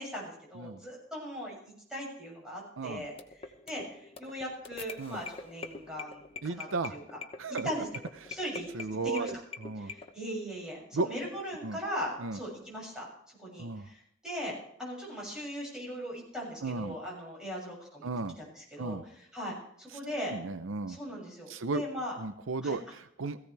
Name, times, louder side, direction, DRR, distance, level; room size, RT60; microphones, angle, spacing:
voice 1, 0.0-3.1 3.7-7.0 7.6-7.9 8.3-8.7 9.0-9.4 9.8-13.1 13.4-18.1 18.4-19.0 19.3-20.4 20.9-22.2 22.6-22.8, equal, 5° right, -4 dB, 7.1 m, -39 dB
sound 1, 2.8-10.1, left 4 dB, 30° left, 1.0 m, -44 dB
voice 2, 6.4-7.0 7.4-7.7 8.2-8.3 8.7-9.9 10.9-11.1 11.6-11.8 12.2-12.4 13.6-13.9 16.6-17.0 18.0-18.4 18.8-19.0 20.3-21.0 21.5-21.8 22.2-23.4, right 3 dB, 85° right, 11 dB, 0.7 m, -34 dB
17.5 x 15.5 x 3.4 m, 0.69 s
head